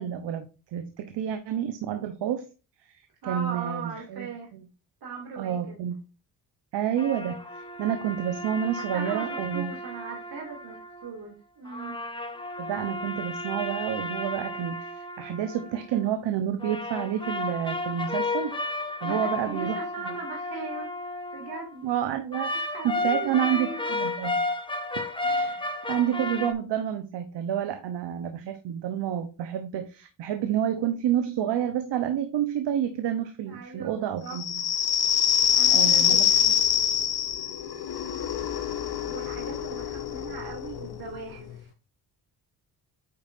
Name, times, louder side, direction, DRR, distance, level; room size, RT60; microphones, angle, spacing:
voice 1, 0.0-2.5 2.9-4.7 5.4-6.0 6.7-9.7 12.6-19.8 20.0-20.1 21.8-24.4 25.2-34.6 35.7-36.3, right 10 dB, 75° right, 8 dB, 1.0 m, -29 dB
voice 2, 3.2-4.5 5.0-5.8 8.8-11.9 19.0-20.9 21.3-21.9 22.7-23.9 33.5-34.4 35.5-36.4 39.0-41.7, right 4 dB, 60° right, -1 dB, 3.0 m, -39 dB
sound 1, 7.0-11.1 11.7-16.1 16.6-21.7 22.3-26.5, left 2 dB, 10° left, 1.1 m, -33 dB
sound 2, 34.3-41.6, left 9 dB, 60° left, 1.2 m, -25 dB
9.0 x 5.3 x 2.7 m, 0.32 s
cardioid pair, 95°, 42 cm